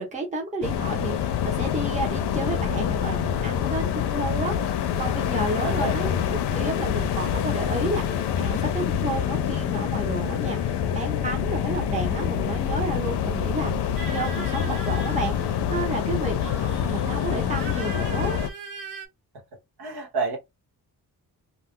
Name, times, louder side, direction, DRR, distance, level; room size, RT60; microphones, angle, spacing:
voice 1, 0.0-18.4, right 2 dB, 20° right, 0.8 m, -32 dB
sound 1, 0.6-18.5, left 9 dB, 80° left, 0.6 m, -26 dB
sound 2, 14.0-15.8 16.4-19.1, right 4 dB, 55° right, 0.8 m, -40 dB
voice 2, 19.8-20.4, right 4 dB, 70° right, 1.1 m, -28 dB
2.4 x 2.3 x 3.6 m
wide cardioid pair, 180°, 39 cm